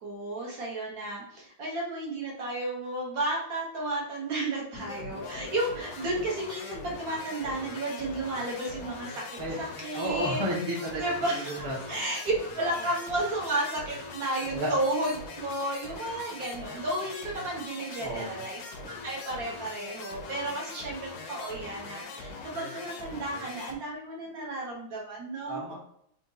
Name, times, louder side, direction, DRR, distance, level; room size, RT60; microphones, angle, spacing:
voice 1, 0.0-10.4 11.0-18.6 19.0-25.6, right 1 dB, 65° right, -3 dB, 1.1 m, -33 dB
sound 1, 4.7-23.8, left 3 dB, 70° left, 0.9 m, -42 dB
voice 2, 9.9-11.0 11.3-12.0 14.5-14.7 18.0-18.4 25.5-25.7, right 1 dB, 25° right, -5 dB, 0.6 m, -32 dB
3.7 x 2.4 x 2.6 m, 0.69 s
omnidirectional pair, 1.9 m